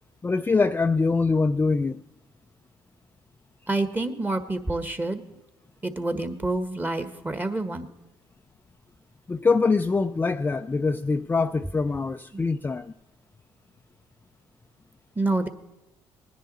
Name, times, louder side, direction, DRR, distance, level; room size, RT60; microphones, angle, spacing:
voice 1, 0.2-2.0 9.3-12.9, left 4 dB, 20° left, 0.4 m, -24 dB
voice 2, 3.7-5.2 5.8-7.9 12.3-12.4 15.1-15.5, right 2 dB, 20° right, 1.5 m, -27 dB
20.0 x 10.5 x 4.2 m
supercardioid pair, 75°, 10 cm